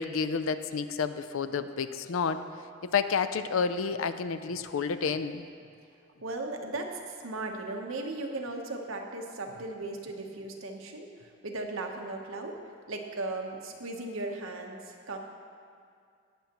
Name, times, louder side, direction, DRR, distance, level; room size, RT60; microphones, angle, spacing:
voice 1, 0.0-2.4 2.8-5.4, left 5 dB, 85° left, 11 dB, 0.5 m, -30 dB
voice 2, 6.2-12.6 12.9-15.2, right 2 dB, 85° right, 2 dB, 1.0 m, -37 dB
18.0 x 7.0 x 3.0 m, 2.3 s
head